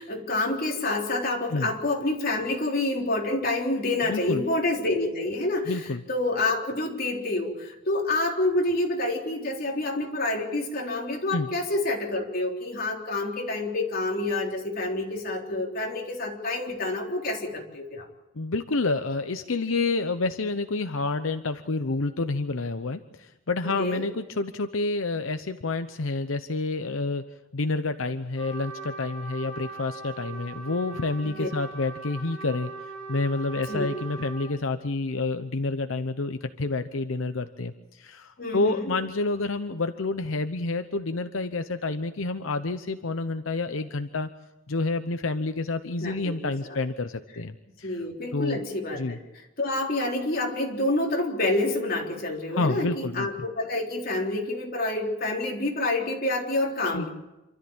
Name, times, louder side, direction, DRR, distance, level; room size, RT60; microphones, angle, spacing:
voice 1, 0.0-5.8 6.1-18.1 23.6-24.0 31.4-31.5 33.7-33.9 38.4-38.9 46.0-46.8 47.8-49.2 49.6-57.1, left 2 dB, 50° left, 0 dB, 3.8 m, -28 dB
voice 2, 4.0-4.4 5.7-6.0 11.3-11.5 18.3-27.2 27.5-32.7 33.1-44.3 44.7-48.0 48.3-48.6 49.0-49.2 52.5-53.3 56.9-57.1, left 3 dB, 90° left, 9 dB, 0.9 m, -29 dB
Trumpet, 28.4-34.6, right 3 dB, 5° left, 5.8 m, -40 dB
27.5 x 13.5 x 8.8 m, 0.99 s
head